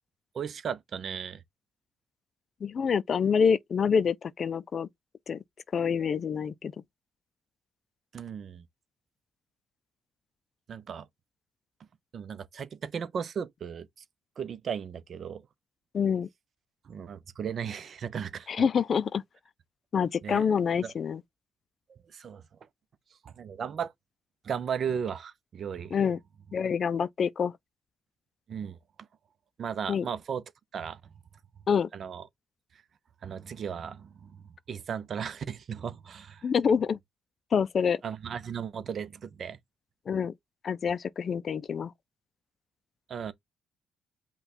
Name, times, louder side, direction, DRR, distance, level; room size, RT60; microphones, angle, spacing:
voice 1, 0.3-1.4 8.1-8.6 10.7-11.1 12.1-13.9 14.4-15.4 16.8-18.5 20.2-20.5 20.8-20.9 21.9-22.4 23.2-23.9 24.4-26.0 28.5-28.8 29.6-30.4 30.7-31.0 31.9-32.3 33.2-36.5 38.0-39.6 43.1-43.3, right 7 dB, 55° right, 0.6 m, -36 dB
voice 2, 2.6-4.9 5.3-5.4 5.7-6.7 15.9-16.3 18.5-19.2 19.9-21.2 25.9-26.2 26.5-27.5 29.9-30.0 31.7-31.9 36.4-37.0 37.5-38.0 40.1-40.3 40.6-41.9, left 6 dB, 50° left, 0.4 m, -26 dB
5.5 x 2.3 x 4.2 m
cardioid pair, 90°, 0 cm